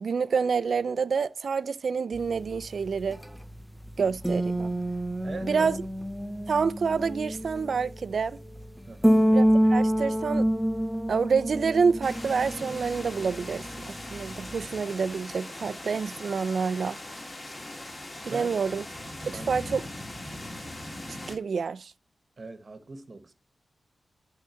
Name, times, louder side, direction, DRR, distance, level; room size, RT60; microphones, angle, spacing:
voice 1, 0.0-3.2 4.0-4.7 5.4-5.8 6.5-8.4 9.3-10.5 11.1-17.0 18.3-18.9 19.3-19.8 21.3-21.9, right 5 dB, 60° right, 0.4 m, -27 dB
sound 1, 2.1-14.7, equal, ahead, 0.6 m, -28 dB
voice 2, 5.2-5.7 8.9-9.2 18.2-18.5 19.0-19.5 22.4-23.3, right 3 dB, 40° right, 1.2 m, -41 dB
sound 2, 12.0-21.4, left 1 dB, 25° left, 1.9 m, -40 dB
11.5 x 3.9 x 6.2 m
wide cardioid pair, 110°, 0 cm